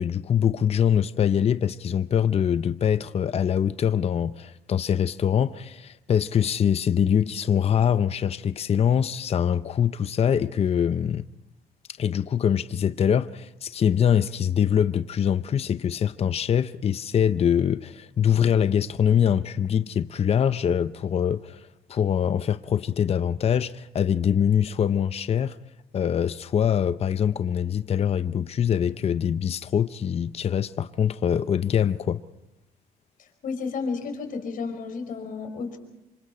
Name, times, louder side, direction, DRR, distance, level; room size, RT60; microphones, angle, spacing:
voice 1, 0.0-11.2 12.0-25.6 25.9-32.2, left 8 dB, 40° left, 0.7 m, -23 dB
voice 2, 33.4-35.8, left 4 dB, 65° left, 5.2 m, -32 dB
28.0 x 26.0 x 4.4 m
cardioid pair, 105°, 15 cm